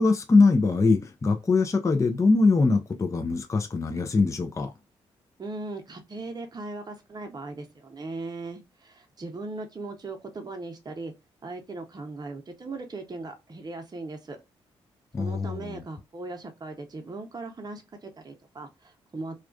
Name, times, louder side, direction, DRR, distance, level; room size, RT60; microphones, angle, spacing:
voice 1, 0.0-4.7 15.1-15.8, left 3 dB, 25° left, 0.4 m, -22 dB
voice 2, 5.4-11.1 11.4-14.4 15.2-19.3, right 3 dB, 30° right, 0.7 m, -38 dB
2.3 x 2.3 x 2.4 m
hypercardioid pair, 40°, 13 cm